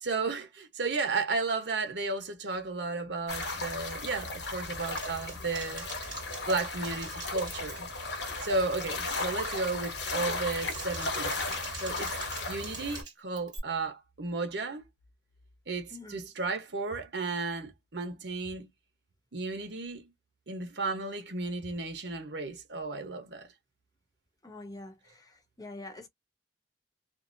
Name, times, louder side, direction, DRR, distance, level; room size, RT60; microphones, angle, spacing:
voice 1, 0.0-5.8 6.5-7.9 8.4-12.2 12.5-14.9 15.7-18.7 19.3-20.1 20.5-23.5, right 3 dB, 75° right, 0.9 m, -34 dB
sound 1, 3.3-13.0, left 3 dB, 70° left, 1.0 m, -35 dB
Typing, 5.0-8.1 8.4-8.8 9.2-9.6 10.4-13.6, right 5 dB, 25° right, 1.4 m, -46 dB
voice 2, 15.9-16.2 24.4-26.1, left 2 dB, 20° left, 0.8 m, -46 dB
2.7 x 2.1 x 2.6 m
head